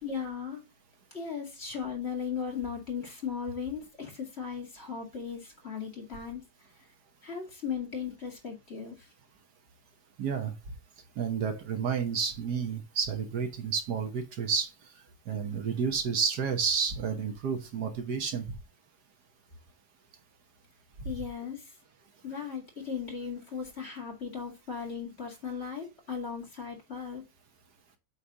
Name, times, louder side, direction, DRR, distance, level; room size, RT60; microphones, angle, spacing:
voice 1, 0.0-0.6 1.1-6.4 7.2-9.1 21.0-21.6 22.2-27.2, left 6 dB, 35° left, 2.5 m, -37 dB
voice 2, 10.2-10.5 11.2-14.7 15.3-18.4, right 6 dB, 70° right, 1.6 m, -30 dB
8.3 x 3.3 x 5.0 m
omnidirectional pair, 1.9 m